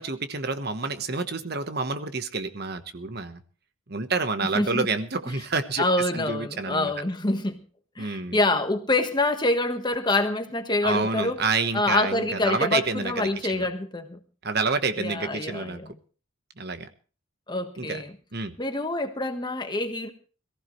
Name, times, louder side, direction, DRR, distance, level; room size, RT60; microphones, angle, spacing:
voice 1, 0.0-3.4 3.9-5.8 6.1-6.9 8.0-8.4 10.8-13.7 14.4-15.8 16.6-16.9 17.8-18.0 18.3-18.6, right 4 dB, 50° right, 1.2 m, -28 dB
voice 2, 4.5-4.9 5.8-7.6 8.0-11.4 11.7-14.2 15.0-16.0 17.5-18.1 18.6-20.1, left 2 dB, 20° left, 1.4 m, -26 dB
22.0 x 15.0 x 3.2 m
head